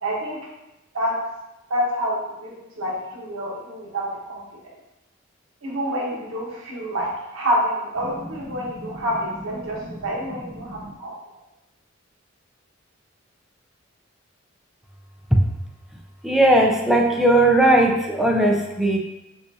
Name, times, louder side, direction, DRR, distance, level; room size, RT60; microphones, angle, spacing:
voice 1, 0.0-0.4 0.9-1.1 1.7-4.4 5.6-11.1, equal, 90° right, -5 dB, 1.2 m, -27 dB
voice 2, 8.5-9.1 9.6-10.1 10.4-10.9 15.3-15.4 16.2-19.0, right 1 dB, ahead, 0 dB, 0.5 m, -19 dB
6.8 x 2.5 x 2.7 m, 0.93 s
head